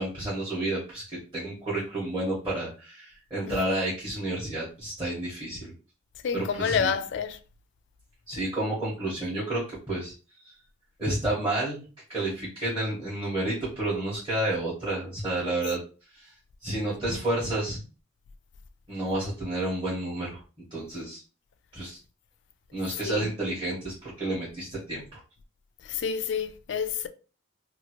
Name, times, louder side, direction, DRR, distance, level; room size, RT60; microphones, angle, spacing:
voice 1, 0.0-5.7 6.3-6.9 8.3-10.1 11.0-11.8 12.1-15.8 16.1-16.3 16.6-17.8 18.9-20.4 20.7-21.2 21.7-22.0 22.7-25.2, right 1 dB, 25° right, 1.1 m, -30 dB
voice 2, 3.5-3.8 6.2-7.4 23.0-23.3 25.8-27.1, left 6 dB, 65° left, 0.3 m, -29 dB
2.8 x 2.4 x 2.9 m
head